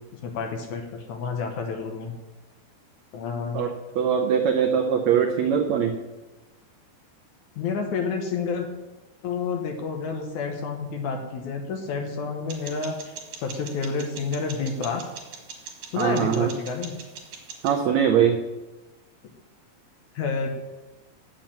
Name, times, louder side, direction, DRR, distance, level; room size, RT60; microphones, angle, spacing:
voice 1, 0.1-2.1 3.1-3.7 7.6-8.8 9.2-15.0 15.9-16.9 20.1-20.5, left 5 dB, 65° left, 3 dB, 2.1 m, -29 dB
voice 2, 3.5-6.0 16.0-16.5 17.6-18.4, right 8 dB, 80° right, 4 dB, 1.6 m, -22 dB
sound 1, 12.5-17.8, right 6 dB, 65° right, 3.1 m, -42 dB
8.9 x 7.6 x 7.3 m, 1.1 s
omnidirectional pair, 4.2 m